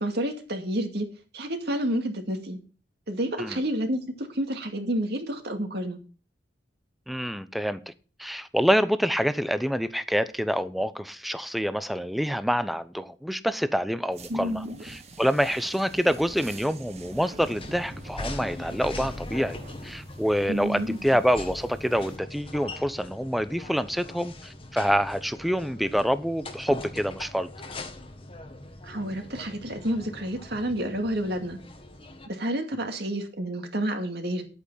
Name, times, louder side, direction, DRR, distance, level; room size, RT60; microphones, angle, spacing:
voice 1, 0.0-1.1 1.3-2.6 3.1-6.0 14.3-14.8 20.5-21.0 28.8-31.6 32.3-34.4, right 1 dB, 60° right, 2.3 m, -29 dB
voice 2, 7.1-7.9 8.2-19.6 19.8-27.5, equal, ahead, 0.7 m, -26 dB
sound 1, 14.1-22.2, right 2 dB, 35° right, 1.5 m, -46 dB
sound 2, 17.4-32.3, left 2 dB, 30° left, 1.4 m, -41 dB
11.0 x 8.5 x 5.7 m
head